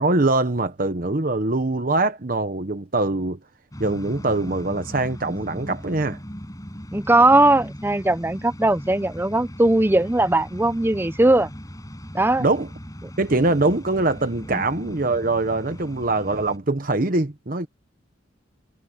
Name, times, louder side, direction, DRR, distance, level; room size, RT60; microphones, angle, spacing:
voice 1, 0.0-3.4 3.8-6.2 12.4-12.7 13.2-17.7, right 2 dB, 45° right, 1.0 m, -23 dB
sound 1, 3.7-16.6, equal, 20° left, 7.3 m, -38 dB
voice 2, 6.9-11.5 12.1-12.5 14.5-14.6, right 2 dB, 10° right, 0.5 m, -19 dB
head